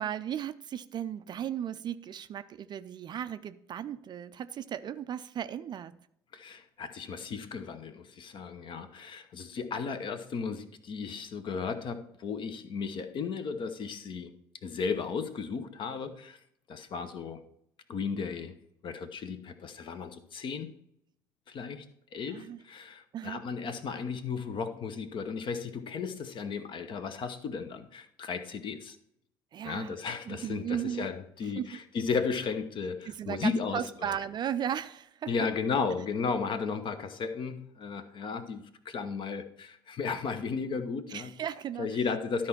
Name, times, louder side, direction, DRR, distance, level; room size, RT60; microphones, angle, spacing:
voice 1, 0.0-6.0 22.3-22.6 23.1-23.4 29.5-30.0 30.3-31.1 31.5-31.7 33.1-35.3 41.1-41.9, right 9 dB, 35° right, 0.4 m, -36 dB
voice 2, 6.3-14.3 14.6-16.4 16.7-17.4 17.9-18.6 18.8-20.7 21.5-21.9 22.1-29.0 29.6-34.1 35.3-41.3 41.8-42.5, left 5 dB, 40° left, 0.9 m, -34 dB
13.0 x 4.4 x 4.4 m
figure-of-eight pair, 60°, 12 cm